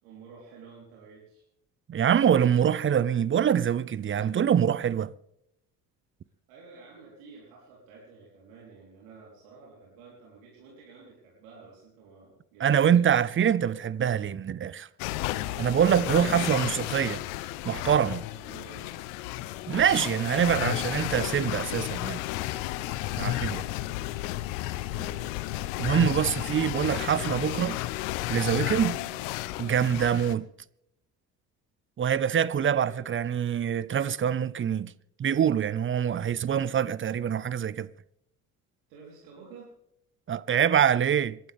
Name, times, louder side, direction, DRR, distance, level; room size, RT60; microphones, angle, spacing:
voice 1, 0.0-1.4 6.5-13.2 16.2-16.8 18.2-18.9 20.5-20.9 23.8-24.5 24.9-25.3 28.8-29.2 32.7-33.0 38.9-39.7, right 5 dB, 75° right, 4.0 m, -50 dB
voice 2, 1.9-5.1 12.6-14.9 15.6-17.2 17.6-18.2 19.7-22.2 23.2-23.6 25.8-27.8 28.3-29.0 29.6-30.5 32.0-34.9 35.2-37.9 40.3-41.4, right 9 dB, 25° right, 0.7 m, -25 dB
sound 1, 15.0-30.3, left 16 dB, 70° left, 0.9 m, -32 dB
27.0 x 12.0 x 3.5 m
hypercardioid pair, 55°, 45 cm